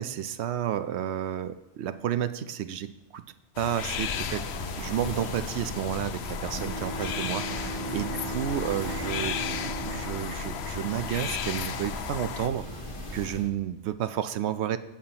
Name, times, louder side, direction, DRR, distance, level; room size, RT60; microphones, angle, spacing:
voice 1, 0.0-3.2 3.6-12.8 13.1-14.8, right 10 dB, 70° right, 12 dB, 0.8 m, -31 dB
sound 1, 3.6-12.5, left 8 dB, 65° left, 0.8 m, -35 dB
sound 2, 3.7-13.5, left 1 dB, 45° left, 1.5 m, -39 dB
Bowed string instrument, 6.5-11.5, right 3 dB, 50° right, 1.3 m, -38 dB
20.5 x 7.2 x 2.9 m, 1.1 s
omnidirectional pair, 1.2 m